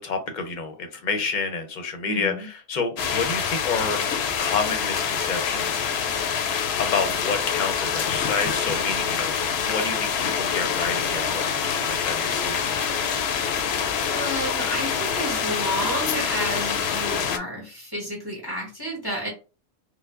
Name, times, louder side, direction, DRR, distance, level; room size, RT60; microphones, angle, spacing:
voice 1, 0.0-4.1 4.4-6.0 6.8-12.8, left 4 dB, 50° left, 6 dB, 0.8 m, -29 dB
voice 2, 2.1-2.5 14.1-19.3, equal, 20° right, -2 dB, 1.3 m, -31 dB
sound 1, 3.0-17.4, left 7 dB, 80° left, 0.8 m, -26 dB
4.4 x 2.2 x 2.5 m, 0.33 s
omnidirectional pair, 1.1 m